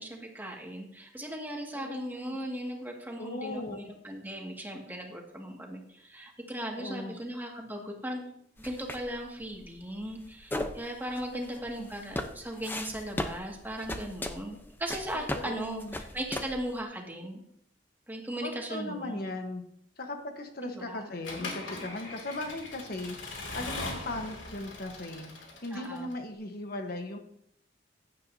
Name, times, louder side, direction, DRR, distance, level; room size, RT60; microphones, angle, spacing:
voice 1, 0.0-8.3 8.6-15.8 16.1-17.4 18.1-19.2 20.6-21.1 25.7-26.1, right 1 dB, 10° right, 0 dB, 2.0 m, -38 dB
voice 2, 1.7-2.4 3.2-3.9 6.7-7.2 11.3-11.4 11.7-11.9 15.1-15.9 18.4-19.6 20.0-27.2, left 2 dB, 55° left, 4 dB, 1.2 m, -38 dB
sound 1, 8.6-16.8, left 1 dB, 10° left, 0.7 m, -38 dB
Accelerating revving vroom / Mechanisms, 21.3-26.2, left 2 dB, 85° left, 2.6 m, -40 dB
16.0 x 10.0 x 2.8 m, 0.71 s
head